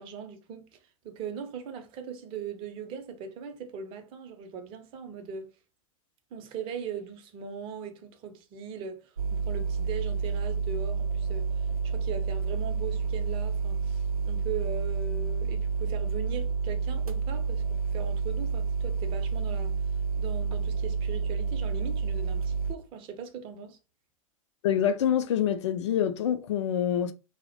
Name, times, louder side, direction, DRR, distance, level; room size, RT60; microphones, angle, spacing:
voice 1, 0.0-5.5 6.3-19.8 20.2-23.8, right 7 dB, 30° right, 0.6 m, -40 dB
sound 1, 9.2-22.8, right 5 dB, 85° right, 0.4 m, -29 dB
voice 2, 24.6-27.1, left 9 dB, 55° left, 0.4 m, -26 dB
2.4 x 2.1 x 2.6 m
figure-of-eight pair, 95°, 18 cm